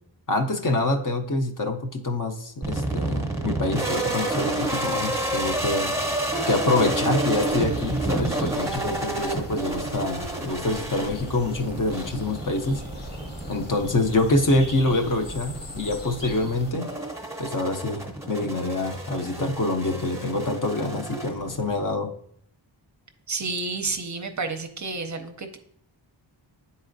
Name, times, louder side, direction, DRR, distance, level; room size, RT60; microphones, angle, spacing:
voice 1, 0.3-5.9 6.5-12.8 13.5-16.9 17.4-22.1, left 2 dB, 45° left, 4 dB, 0.6 m, -26 dB
sound 1, 2.6-21.8, right 2 dB, 5° right, 0.8 m, -30 dB
sound 2, 7.3-16.7, left 1 dB, 65° left, 1.3 m, -40 dB
voice 2, 23.3-25.6, right 4 dB, 40° right, 7 dB, 0.5 m, -30 dB
10.0 x 4.1 x 2.6 m, 0.67 s
wide cardioid pair, 135°, 46 cm